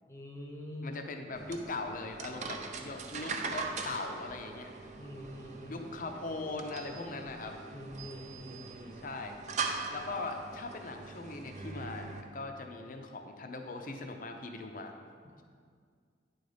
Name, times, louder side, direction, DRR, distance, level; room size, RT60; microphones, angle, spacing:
voice 1, 0.0-1.0 4.9-5.9 7.7-9.0, left 1 dB, 15° left, 0 dB, 0.7 m, -45 dB
voice 2, 0.8-4.9 5.7-7.6 8.9-9.4 9.9-14.9, left 3 dB, 45° left, 4 dB, 0.6 m, -40 dB
sound 1, 1.3-12.2, right 4 dB, 40° right, 0.5 m, -41 dB
9.6 x 4.0 x 5.0 m, 2.1 s
head